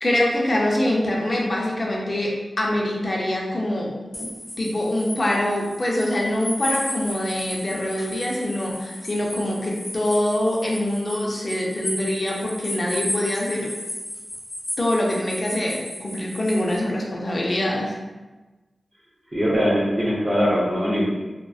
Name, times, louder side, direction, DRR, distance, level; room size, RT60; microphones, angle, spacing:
voice 1, 0.0-4.3 4.6-13.7 14.8-17.9, left 1 dB, 40° left, -2 dB, 0.5 m, -24 dB
sound 1, 4.1-16.8, left 1 dB, 80° left, 0.6 m, -34 dB
voice 2, 19.3-21.1, equal, 30° right, -5 dB, 0.7 m, -21 dB
2.4 x 2.1 x 2.3 m, 1.2 s
wide cardioid pair, 85°, 0 cm